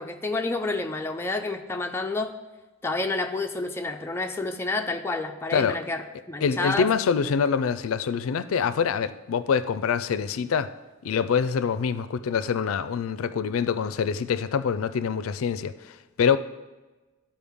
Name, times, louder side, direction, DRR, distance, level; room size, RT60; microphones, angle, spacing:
voice 1, 0.0-2.3 2.8-6.9, left 3 dB, 10° left, 0.5 m, -29 dB
voice 2, 6.4-10.7 11.0-16.4, left 6 dB, 90° left, 0.4 m, -25 dB
13.0 x 4.5 x 3.5 m
head